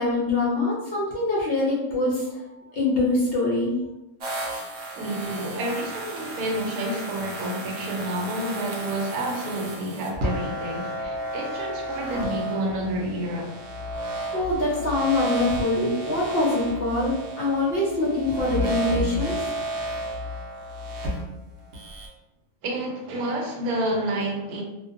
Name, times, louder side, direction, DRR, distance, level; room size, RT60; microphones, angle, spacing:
voice 1, 0.0-3.7 14.3-19.5, left 2 dB, 60° left, -5 dB, 0.6 m, -24 dB
sound 1, 4.2-22.1, equal, 60° right, 0.7 m, -32 dB
voice 2, 5.0-13.5 22.6-24.6, right 1 dB, 85° right, 1 dB, 1.1 m, -29 dB
2.4 x 2.2 x 2.4 m, 0.94 s
omnidirectional pair, 1.5 m